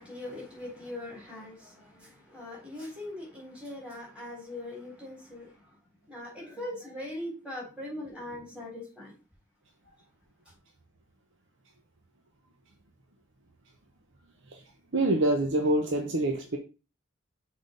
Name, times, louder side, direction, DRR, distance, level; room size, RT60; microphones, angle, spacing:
voice 1, 0.0-5.8 6.1-9.2, left 1 dB, 5° right, 3.5 m, -41 dB
voice 2, 14.9-16.6, right 1 dB, 60° right, 0.9 m, -26 dB
6.1 x 3.9 x 5.1 m
head